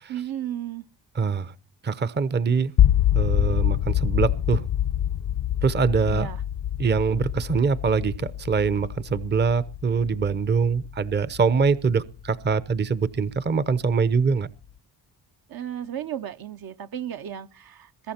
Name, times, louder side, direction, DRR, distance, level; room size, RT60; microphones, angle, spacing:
voice 1, 0.1-0.9 6.1-6.4 15.5-18.1, right 10 dB, 55° right, 0.8 m, -34 dB
voice 2, 1.2-1.5 1.8-2.7 3.1-4.6 5.6-6.3 6.8-14.5, right 5 dB, 25° right, 0.7 m, -23 dB
sound 1, 2.8-12.8, left 11 dB, 60° left, 0.7 m, -26 dB
21.5 x 11.5 x 4.3 m
cardioid pair, 90°, 42 cm